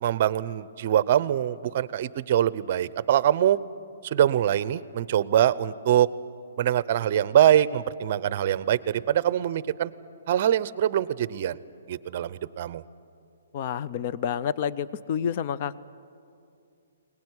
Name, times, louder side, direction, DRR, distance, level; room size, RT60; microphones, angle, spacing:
voice 1, 0.0-3.6 4.0-6.1 6.6-9.9 10.3-11.6 11.9-12.8, right 11 dB, 40° right, 18 dB, 0.7 m, -23 dB
voice 2, 13.5-15.8, left 8 dB, 35° left, 15 dB, 0.5 m, -29 dB
22.5 x 19.0 x 9.7 m, 2.5 s
hypercardioid pair, 165°, 0 cm